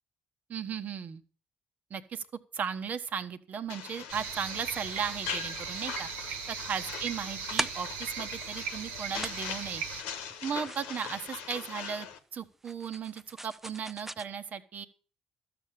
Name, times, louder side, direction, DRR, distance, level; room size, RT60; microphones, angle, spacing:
voice 1, 0.5-1.2 1.9-2.2 2.5-9.8 10.4-12.1 12.3-14.9, right 7 dB, 55° right, 10 dB, 1.2 m, -36 dB
sound 1, 3.7-12.2, left 7 dB, 90° left, 1.3 m, -41 dB
sound 2, 4.1-10.0, right 7 dB, 85° right, 1.2 m, -38 dB
sound 3, 7.5-14.3, right 1 dB, 10° right, 0.5 m, -42 dB
13.0 x 7.1 x 7.4 m, 0.41 s
supercardioid pair, 55°, 3 cm